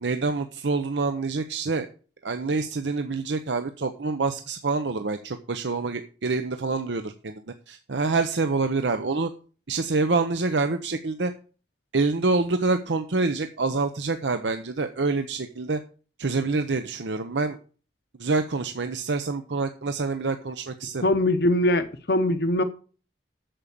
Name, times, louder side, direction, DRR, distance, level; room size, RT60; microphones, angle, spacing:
voice 1, 0.0-1.9 2.2-9.3 9.7-11.3 11.9-15.8 16.2-17.6 18.2-21.1, right 3 dB, 80° right, 0.8 m, -26 dB
voice 2, 21.0-22.6, left 1 dB, 60° left, 0.8 m, -22 dB
8.9 x 7.2 x 6.8 m
head